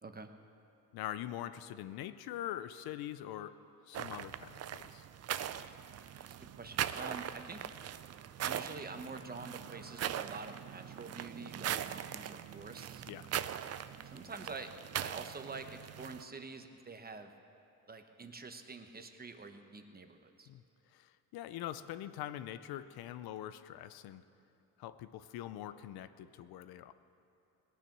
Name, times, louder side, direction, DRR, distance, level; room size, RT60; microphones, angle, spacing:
voice 1, 0.9-3.6 3.9-5.0 13.1-13.3 20.5-20.6 20.9-24.2 24.8-26.9, left 12 dB, 85° left, 12 dB, 0.6 m, -43 dB
sound 1, 3.9-16.2, right 10 dB, 45° right, 0.5 m, -41 dB
voice 2, 6.2-7.6 8.4-13.0 14.0-14.7 15.0-17.3 17.9-20.5, right 4 dB, 25° right, 7 dB, 1.0 m, -47 dB
18.5 x 9.1 x 6.0 m, 2.7 s
cardioid pair, 95°, 36 cm